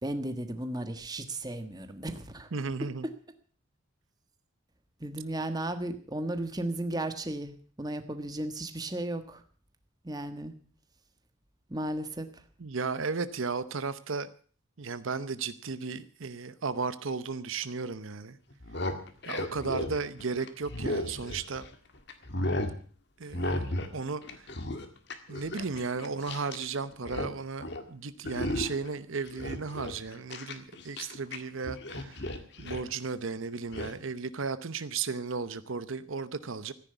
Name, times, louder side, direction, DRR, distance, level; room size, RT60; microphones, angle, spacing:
voice 1, 0.0-3.1 5.0-7.5 7.8-9.4 10.0-10.5 11.7-12.3, right 1 dB, 20° right, 8 dB, 1.4 m, -35 dB
voice 2, 2.5-3.1 12.6-14.3 14.8-18.4 19.3-21.6 23.2-24.5 25.3-32.2 32.6-36.7, right 4 dB, 75° right, 13 dB, 0.8 m, -35 dB
sound 1, 18.5-21.7 22.1-22.8 23.3-24.0 24.2-26.7 26.9-27.3 27.6-27.9 28.3-28.9 29.3-31.4 31.6-32.9 33.7-33.9, left 1 dB, 55° left, 1.8 m, -34 dB
14.5 x 10.5 x 8.0 m, 0.44 s
head